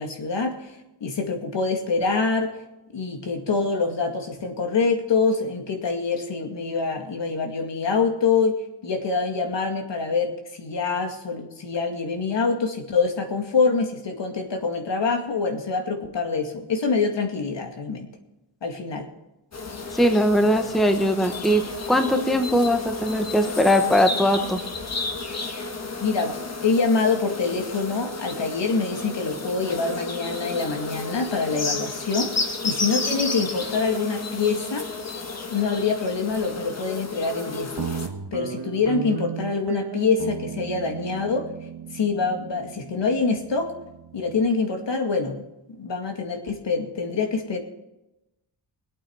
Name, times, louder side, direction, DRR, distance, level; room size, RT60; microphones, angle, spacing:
voice 1, 0.0-2.5 2.9-8.6 8.8-18.1 18.6-19.1 26.0-26.3 26.6-34.9 35.5-38.0 38.3-41.5 41.9-43.7 44.1-45.4 45.8-47.6, left 4 dB, 65° left, 3 dB, 2.3 m, -25 dB
sound 1, 19.5-38.1, left 3 dB, 35° left, 1.4 m, -32 dB
voice 2, 19.9-24.6, equal, ahead, 6 dB, 0.9 m, -20 dB
Guitar, 37.8-44.5, right 6 dB, 55° right, 1.1 m, -35 dB
22.5 x 8.6 x 4.7 m, 0.94 s
wide cardioid pair, 175°, 47 cm